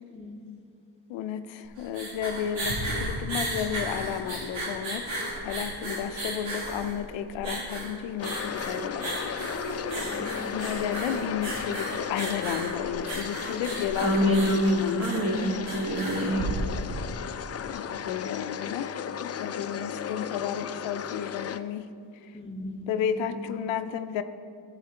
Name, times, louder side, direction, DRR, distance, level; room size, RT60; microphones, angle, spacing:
voice 1, 1.1-5.2 5.4-9.1 10.5-15.3 17.7-21.9 22.9-24.2, left 9 dB, 85° left, 9 dB, 0.6 m, -32 dB
sound 1, 1.6-17.1, right 1 dB, 90° right, 2.3 m, -34 dB
sound 2, 8.2-21.6, left 8 dB, 35° left, 0.5 m, -35 dB
voice 2, 9.9-10.5 17.9-18.1 22.3-23.5, left 1 dB, 15° left, -1 dB, 2.7 m, -40 dB
voice 3, 14.0-16.5, equal, 35° right, 0 dB, 2.3 m, -25 dB
13.0 x 7.8 x 4.5 m, 2.3 s
supercardioid pair, 60°, 44 cm